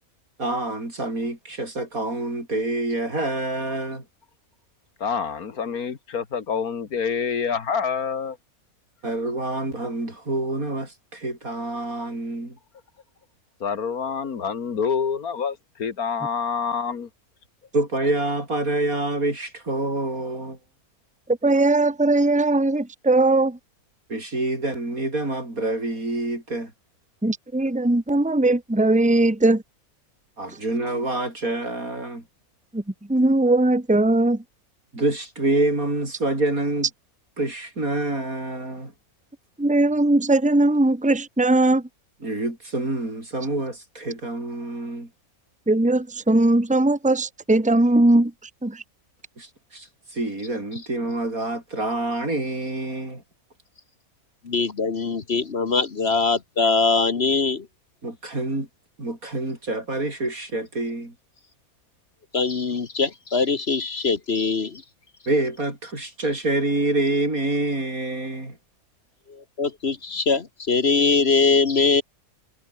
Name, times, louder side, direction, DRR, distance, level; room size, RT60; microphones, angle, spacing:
voice 1, 0.4-4.1 9.0-12.6 17.7-20.6 24.1-26.7 30.4-32.2 34.9-36.9 37.4-38.9 42.2-45.1 49.4-53.2 58.0-58.7 59.0-61.1 65.3-68.6, right 2 dB, 70° right, 7.2 m, -27 dB
voice 2, 5.0-8.4 13.6-17.1, left 6 dB, 80° left, 2.2 m, -27 dB
voice 3, 21.4-23.6 27.2-29.6 32.7-32.8 33.1-34.4 39.6-41.8 45.7-48.3 48.6-48.8, right 2 dB, 5° right, 1.4 m, -19 dB
voice 4, 54.4-57.7 62.3-64.8 69.3-72.0, left 4 dB, 45° left, 1.5 m, -22 dB
omnidirectional pair, 1.5 m